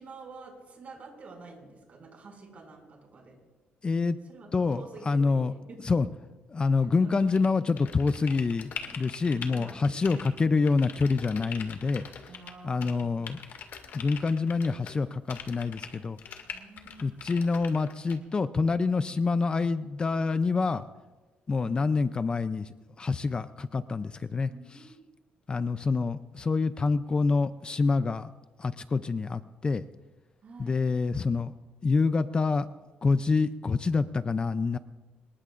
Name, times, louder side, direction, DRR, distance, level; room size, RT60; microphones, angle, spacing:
voice 1, 0.0-3.4 4.2-5.8 6.7-7.4 9.3-10.3 12.3-13.3 16.5-17.1 21.5-21.8 24.5-25.0 30.4-30.8, right 3 dB, 40° right, 1 dB, 6.0 m, -48 dB
voice 2, 3.8-4.2 4.5-5.5 5.8-6.1 6.5-12.0 12.6-13.4 13.9-16.2 17.0-20.8 21.5-24.9 25.5-28.3 28.6-29.8 30.6-31.5 31.8-32.7 33.0-34.8, left 4 dB, 25° left, 12 dB, 0.5 m, -27 dB
sound 1, 7.2-10.4 10.7-12.5 12.8-15.0 15.3-18.2, left 7 dB, 60° left, 2.1 m, -42 dB
26.0 x 21.5 x 2.5 m, 1.2 s
cardioid pair, 135°, 4 cm